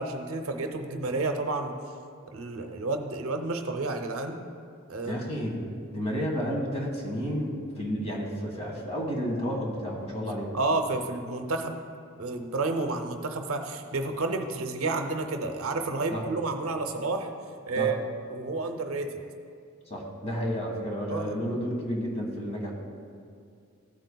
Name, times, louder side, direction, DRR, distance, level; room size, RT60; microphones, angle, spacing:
voice 1, 0.0-1.7 2.3-4.4 4.9-5.2 10.5-11.8 12.2-17.3 17.7-18.0 18.3-19.2 21.1-21.4, right 3 dB, 70° right, 6 dB, 0.7 m, -30 dB
voice 2, 5.0-5.6 5.9-10.5 16.1-16.2 17.7-17.9 19.9-22.7, equal, 30° left, -1 dB, 1.6 m, -31 dB
15.0 x 7.9 x 2.3 m, 2.4 s
head